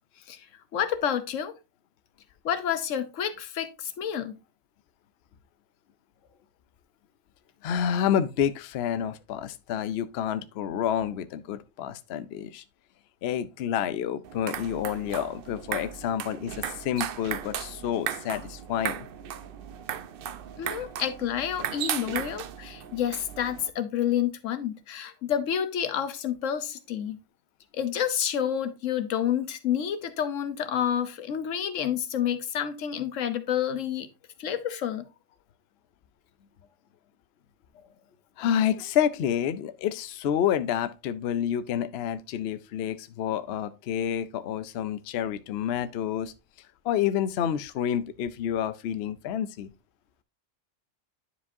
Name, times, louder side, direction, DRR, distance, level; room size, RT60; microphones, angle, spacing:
voice 1, 0.7-1.5 2.4-4.3 20.6-27.2 27.7-34.1 34.4-35.0, left 9 dB, 85° left, 1.2 m, -29 dB
voice 2, 7.6-12.6 13.2-19.1 38.4-46.3 46.8-49.7, left 9 dB, 65° left, 0.8 m, -29 dB
sound 1, 14.2-23.7, right 9 dB, 60° right, 0.6 m, -36 dB
10.0 x 4.9 x 2.6 m
omnidirectional pair, 1.3 m